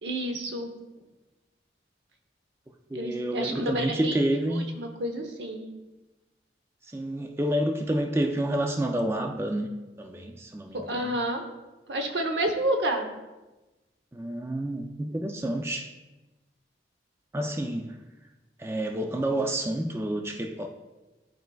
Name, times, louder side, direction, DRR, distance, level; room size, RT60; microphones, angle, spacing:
voice 1, 0.0-0.7 2.9-5.6 10.7-11.4 11.9-13.1, right 1 dB, 85° right, 4 dB, 0.8 m, -30 dB
voice 2, 2.9-4.7 6.9-9.7 10.0-11.1 14.1-15.9 17.3-18.0 18.6-20.7, right 1 dB, 15° right, 3 dB, 0.3 m, -29 dB
10.0 x 4.5 x 2.3 m, 1.1 s
head